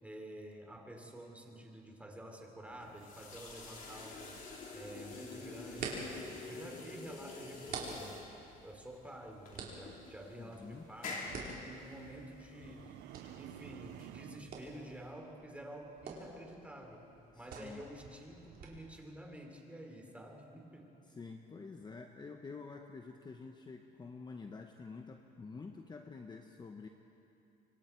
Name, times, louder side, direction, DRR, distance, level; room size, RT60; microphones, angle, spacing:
voice 1, 0.0-4.4 4.7-8.3 8.6-13.0 13.4-17.0 17.3-21.0, right 1 dB, 10° right, 2 dB, 3.4 m, -50 dB
sound 1, 2.7-15.1, left 3 dB, 55° left, 4.2 m, -49 dB
sound 2, 3.2-18.7, right 4 dB, 65° right, 4.4 m, -49 dB
voice 2, 10.3-10.9 17.3-17.8 21.1-26.9, left 4 dB, 25° left, 4 dB, 1.1 m, -48 dB
sound 3, 12.5-14.6, right 17 dB, 80° right, 0.4 m, -51 dB
26.5 x 24.5 x 4.7 m, 2.9 s
cardioid pair, 110°, 17 cm